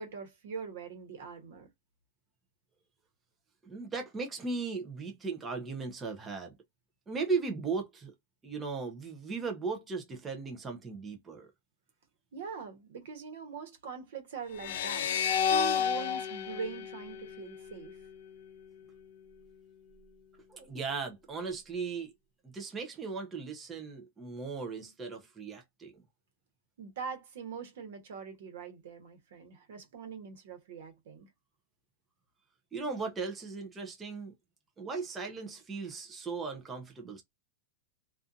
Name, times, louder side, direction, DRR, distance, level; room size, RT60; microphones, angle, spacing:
voice 1, 0.0-1.7 12.3-15.1 15.5-18.0 26.8-31.3, right 5 dB, 70° right, 1.0 m, -42 dB
voice 2, 3.6-6.5 7.1-8.1 8.4-11.5 20.5-22.1 22.4-26.0 32.7-34.3 34.8-37.2, right 4 dB, 15° right, 0.5 m, -37 dB
sound 1, 14.6-17.9, left 8 dB, 65° left, 0.4 m, -31 dB
2.5 x 2.3 x 2.5 m
supercardioid pair, 160°, 0 cm